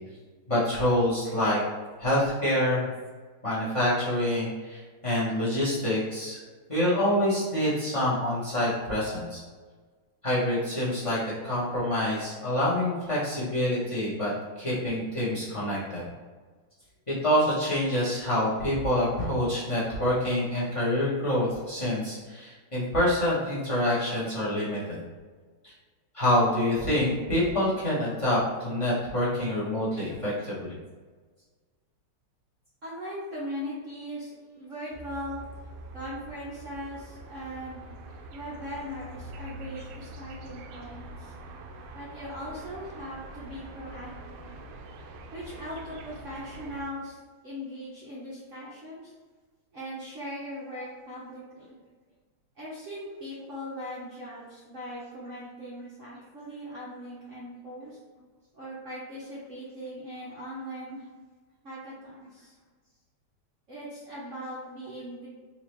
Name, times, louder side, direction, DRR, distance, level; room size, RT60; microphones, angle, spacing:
voice 1, 0.5-1.6 2.0-2.9 3.4-6.4 6.7-9.4 10.2-16.0 17.1-25.0 25.6-25.7 26.1-30.8, left 1 dB, 25° left, -9 dB, 0.7 m, -26 dB
voice 2, 32.8-35.4 35.9-37.8 38.3-41.3 41.9-44.6 45.3-47.2 47.4-49.1 49.7-51.8 52.6-58.0 58.5-61.1 61.6-62.5 63.7-65.3, equal, 60° right, -8 dB, 0.8 m, -39 dB
sound 1, 34.9-46.8, right 1 dB, 75° right, 1.3 m, -44 dB
4.2 x 2.8 x 3.1 m, 1.4 s
omnidirectional pair, 2.4 m